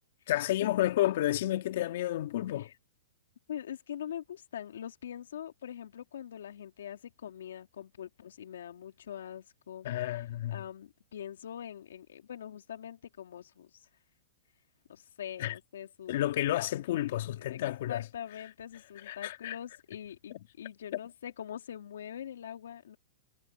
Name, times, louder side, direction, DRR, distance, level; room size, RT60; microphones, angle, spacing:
voice 1, 0.3-2.7 9.8-10.6 15.4-15.5 16.1-18.0 19.1-19.6, left 14 dB, 60° left, 2.4 m, -31 dB
voice 2, 3.5-10.2 10.5-13.9 14.9-16.2 17.4-17.6 17.9-23.0, left 9 dB, 80° left, 3.0 m, -43 dB
hypercardioid pair, 135°, 0 cm